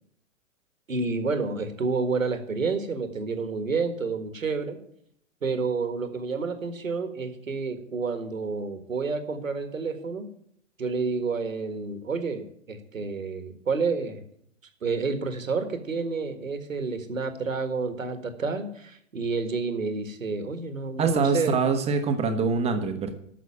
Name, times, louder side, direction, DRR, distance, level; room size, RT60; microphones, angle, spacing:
voice 1, 0.9-4.8 5.4-10.2 10.8-14.2 14.8-21.6, right 4 dB, 85° right, 8 dB, 1.8 m, -29 dB
voice 2, 21.0-23.1, right 5 dB, 15° right, 5 dB, 1.3 m, -24 dB
9.3 x 6.5 x 8.6 m, 0.68 s
hypercardioid pair, 120°, 39 cm